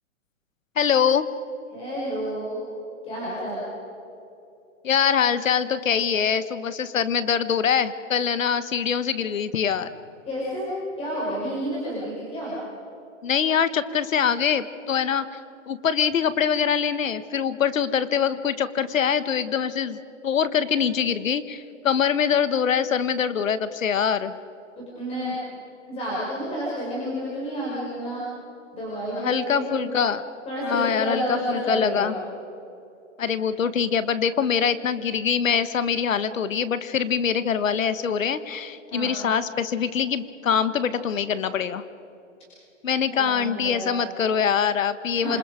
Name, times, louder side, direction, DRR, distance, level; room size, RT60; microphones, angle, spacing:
voice 1, 0.8-1.3 4.8-9.9 13.2-15.3 15.7-24.4 29.2-30.2 30.6-32.2 33.2-41.8 42.8-45.4, left 7 dB, 85° left, 13 dB, 1.5 m, -24 dB
voice 2, 1.7-2.6 3.0-3.6 10.3-10.7 11.0-12.6 24.8-25.3 25.9-28.2 28.7-29.9 30.5-32.2 38.9-39.1 43.1-44.1 45.1-45.4, equal, 15° left, -6 dB, 5.6 m, -30 dB
27.5 x 26.0 x 5.2 m, 2.9 s
hypercardioid pair, 160°, 38 cm